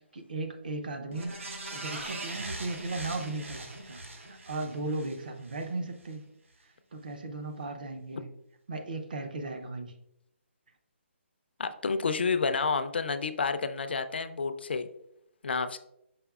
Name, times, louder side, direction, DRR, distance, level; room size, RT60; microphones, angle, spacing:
voice 1, 0.1-1.3 1.7-6.2 6.6-8.3 8.7-9.9, right 2 dB, 45° right, 6 dB, 0.5 m, -36 dB
sound 1, 1.1-5.7 6.0-6.1, right 2 dB, 80° right, 1.0 m, -41 dB
voice 2, 11.6-14.9 15.4-15.8, left 4 dB, 55° left, 10 dB, 0.3 m, -29 dB
4.9 x 4.7 x 2.3 m, 0.80 s
hypercardioid pair, 180°, 7 cm